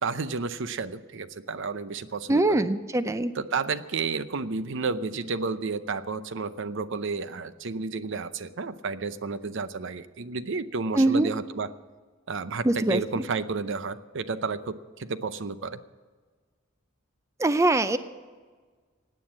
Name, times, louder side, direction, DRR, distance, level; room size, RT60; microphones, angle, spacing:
voice 1, 0.0-2.6 3.4-11.7 12.3-15.8, right 4 dB, 65° right, 13 dB, 0.7 m, -31 dB
voice 2, 2.3-3.3 10.9-11.3 12.6-13.2 17.4-18.0, right 2 dB, 15° right, 12 dB, 0.5 m, -23 dB
17.0 x 9.2 x 7.4 m, 1.5 s
head